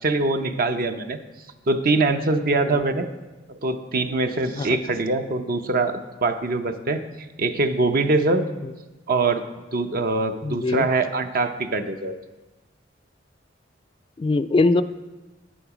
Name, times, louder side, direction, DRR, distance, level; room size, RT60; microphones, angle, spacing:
voice 1, 0.0-1.2 1.7-3.1 3.5-7.0 7.4-8.5 9.1-9.4 9.7-12.1, right 3 dB, 50° right, 8 dB, 0.7 m, -23 dB
voice 2, 10.4-10.9 14.2-14.8, left 3 dB, 30° left, 13 dB, 0.3 m, -21 dB
10.0 x 8.9 x 4.9 m, 1.1 s
head